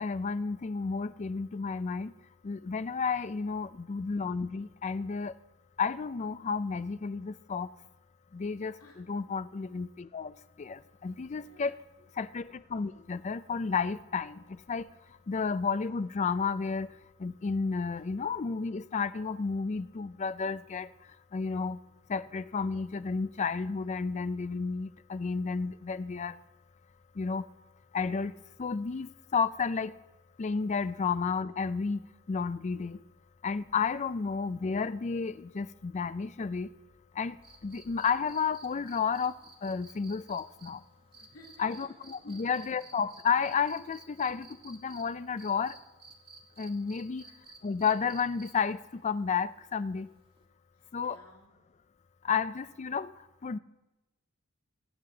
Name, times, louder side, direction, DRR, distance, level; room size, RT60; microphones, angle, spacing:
voice 1, 0.0-2.1 2.4-5.3 5.8-7.7 8.3-11.7 12.2-14.9 15.3-16.9 17.2-20.9 21.3-21.8 22.1-26.4 27.2-27.5 27.9-28.3 28.6-29.9 30.4-32.0 32.3-33.0 33.4-36.7 37.2-37.4 37.6-40.8 41.6-45.8 46.6-47.2 47.6-50.1 50.9-51.2 52.2-53.1 53.4-53.6, left 5 dB, 30° left, 0.4 m, -32 dB
voice 2, 2.7-3.1 8.8-9.0 11.2-11.8 12.9-13.0 37.7-37.8 41.1-41.9 42.2-42.7 47.1-47.7 50.7-51.5, left 1 dB, 70° left, 2.4 m, -56 dB
sound 1, 37.4-45.0 45.4-48.7 50.4-50.5, right 3 dB, 25° right, 1.8 m, -53 dB
23.5 x 9.3 x 3.8 m
head